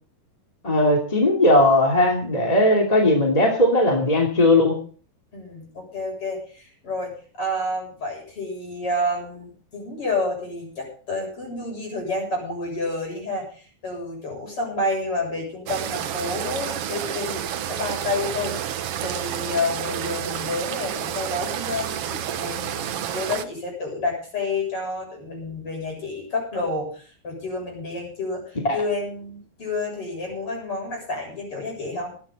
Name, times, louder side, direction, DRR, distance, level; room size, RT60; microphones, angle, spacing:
voice 1, 0.6-4.8 28.7-28.8, left 1 dB, 10° left, 0 dB, 2.2 m, -18 dB
voice 2, 5.3-13.6 13.8-32.1, left 2 dB, 40° left, 0 dB, 8.2 m, -29 dB
sound 1, 15.7-23.4, right 10 dB, 90° right, 1.3 m, -30 dB
19.0 x 12.0 x 4.1 m, 0.41 s
omnidirectional pair, 4.1 m